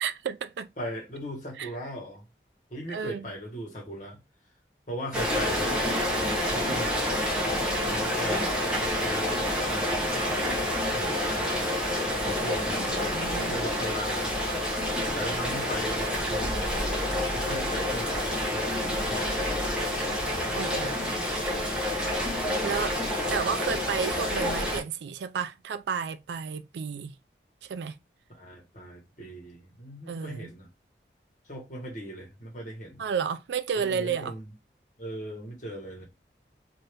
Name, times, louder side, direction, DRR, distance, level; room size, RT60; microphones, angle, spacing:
voice 1, 0.0-0.7 1.6-1.7 2.9-3.2 12.8-13.6 20.6-21.1 22.6-23.0 23.3-27.1 27.6-27.9 30.1-30.5 33.0-34.3, right 6 dB, 80° right, 0.3 m, -32 dB
voice 2, 0.8-2.2 2.7-4.2 4.9-5.8 6.5-7.5 7.8-10.0 10.9-14.3 15.1-19.3 20.3-21.2 28.3-30.7 31.5-33.0 33.7-34.5 35.0-36.0, equal, 45° left, 1.4 m, -39 dB
Rain, 5.1-24.8, left 1 dB, 5° right, 0.8 m, -28 dB
2.7 x 2.6 x 3.3 m
head